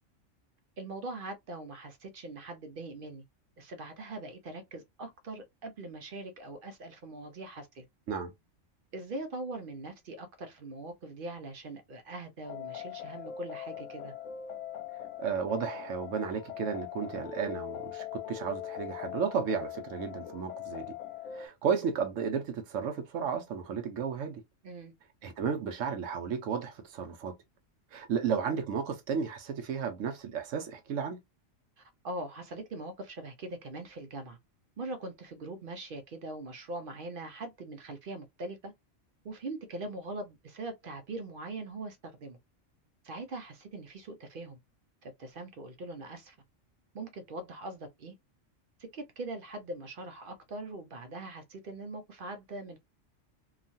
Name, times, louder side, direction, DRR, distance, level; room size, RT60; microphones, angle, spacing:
voice 1, 0.8-3.2 3.6-7.8 8.9-14.1 24.6-24.9 31.8-34.4 34.8-38.7 39.2-42.4 43.0-44.6 45.0-46.4 46.9-48.1 48.9-52.8, right 2 dB, 55° right, 0.6 m, -42 dB
sound 1, 12.4-21.5, left 11 dB, 75° left, 0.9 m, -41 dB
voice 2, 15.2-20.9 21.3-24.4 25.2-27.4 27.9-31.2, right 6 dB, 80° right, 1.0 m, -33 dB
2.9 x 2.3 x 2.5 m
omnidirectional pair, 1.3 m